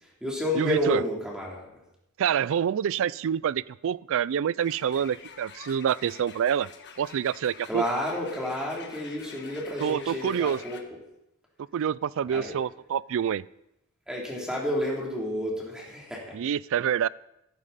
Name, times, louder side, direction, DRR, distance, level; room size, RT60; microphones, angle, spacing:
voice 1, 0.0-1.7 7.7-10.8 12.3-12.6 14.1-16.4, left 1 dB, 5° right, -3 dB, 3.0 m, -30 dB
voice 2, 0.6-1.0 2.2-6.7 7.0-7.8 9.8-10.6 11.7-13.4 16.3-17.1, right 8 dB, 60° right, 22 dB, 0.3 m, -27 dB
sound 1, 4.6-10.8, left 6 dB, 50° left, 1.4 m, -47 dB
14.0 x 12.5 x 4.1 m, 0.86 s
head